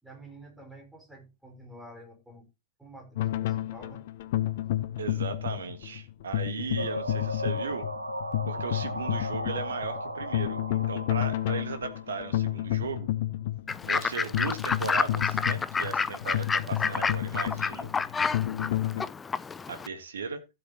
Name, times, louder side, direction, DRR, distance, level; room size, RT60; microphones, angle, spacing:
voice 1, 0.0-2.5 2.8-4.0, right 1 dB, 5° right, 0 dB, 4.8 m, -49 dB
sound 1, 3.2-19.0, left 13 dB, 55° left, 0.8 m, -31 dB
voice 2, 5.0-7.9 8.5-13.1 13.8-17.9 19.7-20.5, right 5 dB, 70° right, 9 dB, 1.6 m, -37 dB
sound 2, 6.8-12.5, equal, 85° right, 1.2 m, -36 dB
Fowl / Bird, 13.7-19.9, left 5 dB, 15° left, 0.5 m, -30 dB
15.5 x 7.7 x 2.9 m, 0.25 s
figure-of-eight pair, 90°, 0 cm